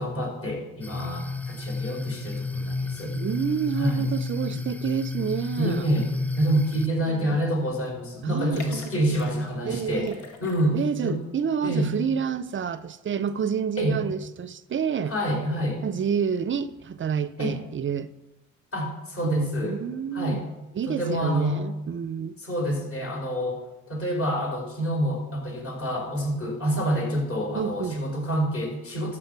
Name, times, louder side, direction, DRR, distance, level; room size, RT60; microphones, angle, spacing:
voice 1, 0.0-3.2 3.8-4.1 5.6-6.1 6.4-10.1 10.4-11.2 11.6-11.9 13.8-14.0 15.1-15.8 17.4-17.6 18.7-19.8 20.1-20.4 20.9-21.6 22.4-23.6 23.9-29.2, equal, 45° left, 4.9 m, -27 dB
sound 1, 0.8-6.9, left 3 dB, 5° left, 0.4 m, -31 dB
voice 2, 3.2-5.9 7.1-7.4 8.2-9.2 9.7-10.2 10.7-15.1 15.8-18.1 19.2-20.4 20.7-22.4 27.5-28.0, right 7 dB, 40° right, 0.6 m, -29 dB
sound 2, 7.1-7.3 7.6-7.7 8.4-9.6 10.0-11.0 11.4-11.5, left 3 dB, 70° left, 1.8 m, -44 dB
12.5 x 5.1 x 8.2 m
cardioid pair, 90°, 30 cm